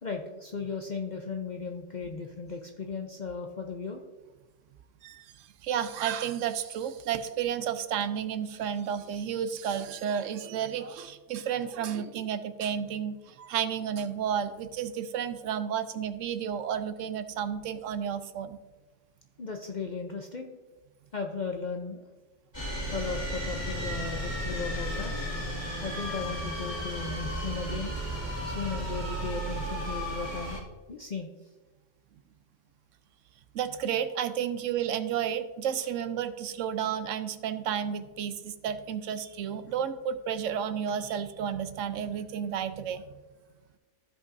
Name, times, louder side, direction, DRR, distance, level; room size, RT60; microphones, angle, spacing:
voice 1, 0.0-4.0 19.4-20.5 21.1-22.0 22.9-25.1 25.8-27.9 28.4-31.3, left 5 dB, 45° left, 3 dB, 0.7 m, -36 dB
voice 2, 5.0-18.6 33.5-43.2, right 8 dB, 90° right, 11 dB, 1.0 m, -32 dB
sound 1, 22.5-30.6, equal, 20° left, 2.3 m, -34 dB
15.0 x 5.3 x 2.6 m, 1.2 s
omnidirectional pair, 1.3 m